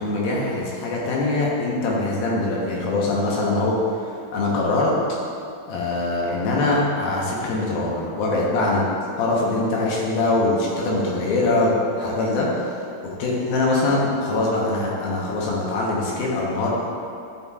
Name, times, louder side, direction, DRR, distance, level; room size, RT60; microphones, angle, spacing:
voice 1, 0.0-3.7 4.3-4.9 5.7-8.8 9.2-12.8 13.2-16.7, left 2 dB, 75° left, -4 dB, 2.8 m, -23 dB
12.0 x 5.6 x 2.4 m, 2.5 s
omnidirectional pair, 4.4 m